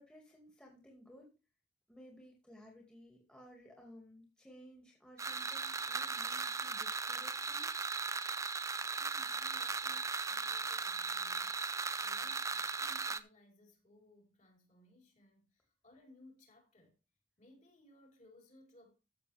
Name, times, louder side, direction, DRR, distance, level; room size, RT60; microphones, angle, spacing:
voice 1, 0.0-1.3 1.9-7.7, equal, 5° left, 2.2 m, -57 dB
sound 1, 5.2-13.2, right 4 dB, 15° right, 0.5 m, -37 dB
voice 2, 8.9-17.0 17.4-18.9, left 1 dB, 40° left, 4.4 m, -63 dB
14.0 x 7.0 x 3.5 m
head